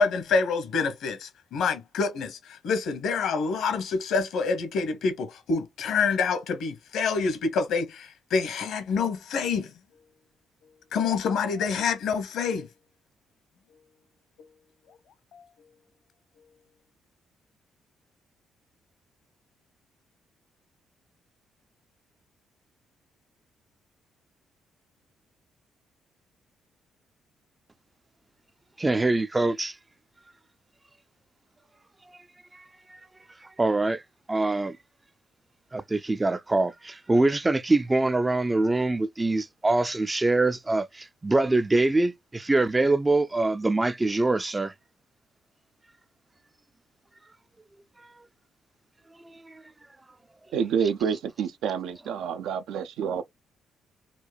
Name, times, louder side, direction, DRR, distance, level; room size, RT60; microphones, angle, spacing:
voice 1, 0.0-9.7 10.9-12.7 15.3-15.4, left 5 dB, 75° left, 1.0 m, -27 dB
voice 2, 28.8-29.7 32.5-32.6 32.9-33.0 33.6-34.0 34.3-34.8 35.7-44.7 49.2-49.6, right 2 dB, 20° right, 0.3 m, -24 dB
voice 3, 50.5-53.2, right 7 dB, 85° right, 0.5 m, -28 dB
4.5 x 2.4 x 2.2 m
cardioid pair, 90°, 0 cm